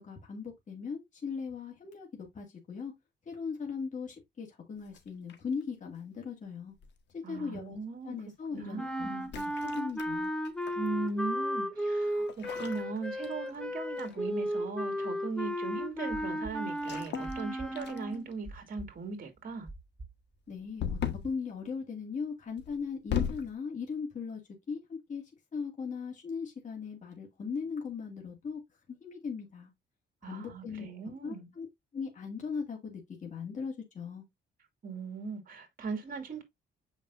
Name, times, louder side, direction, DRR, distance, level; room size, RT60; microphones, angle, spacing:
voice 1, 0.0-2.9 3.3-6.7 7.1-7.8 8.0-9.1 9.6-10.3 20.5-24.4 24.7-25.2 25.5-28.6 28.9-29.7 30.2-30.9 31.2-31.7 31.9-34.2, left 5 dB, 40° left, 2.2 m, -38 dB
sound 1, 4.9-5.6 6.8-7.1 9.2-10.9 12.3-13.7 14.0-14.3 16.8-17.4 17.8-18.3 20.8-21.4 22.6-23.5, left 9 dB, 65° left, 1.4 m, -37 dB
voice 2, 7.2-8.1 8.5-9.3 10.8-19.7 30.2-31.5 34.8-36.4, right 4 dB, 45° right, 2.4 m, -38 dB
sound 2, 8.8-18.3, equal, 5° left, 0.9 m, -34 dB
sound 3, 15.8-19.1 19.4-21.3, right 2 dB, 25° right, 1.2 m, -46 dB
7.1 x 5.2 x 2.6 m
cardioid pair, 90°, 20 cm